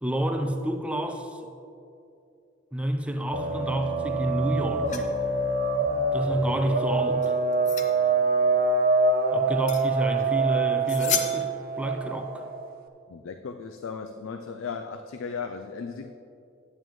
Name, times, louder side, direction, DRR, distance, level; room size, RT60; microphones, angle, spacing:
voice 1, 0.0-1.4 2.7-5.1 6.1-7.3 9.3-12.4, equal, 5° right, 4 dB, 0.5 m, -29 dB
sound 1, 3.3-12.6, right 3 dB, 50° right, 0.6 m, -25 dB
sound 2, 4.9-5.1 7.2-8.0 9.7-9.8 10.2-10.3 10.9-11.7, left 7 dB, 40° left, 0.6 m, -31 dB
voice 2, 13.1-16.1, left 5 dB, 85° left, 7 dB, 0.4 m, -36 dB
11.0 x 9.0 x 3.1 m, 2.6 s
head